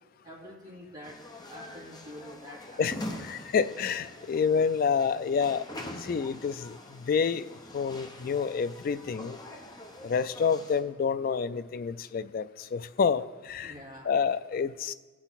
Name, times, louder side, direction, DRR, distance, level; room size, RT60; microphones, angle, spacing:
voice 1, 0.2-1.2 1.5-2.8 13.6-14.1, left 1 dB, 25° right, -6 dB, 2.2 m, -46 dB
sound 1, 1.0-10.8, left 1 dB, 20° left, 0.8 m, -44 dB
voice 2, 2.8-5.6 6.0-9.4 10.0-13.7 14.0-14.9, left 6 dB, 50° left, 14 dB, 0.3 m, -28 dB
16.5 x 6.1 x 4.0 m, 1.3 s
head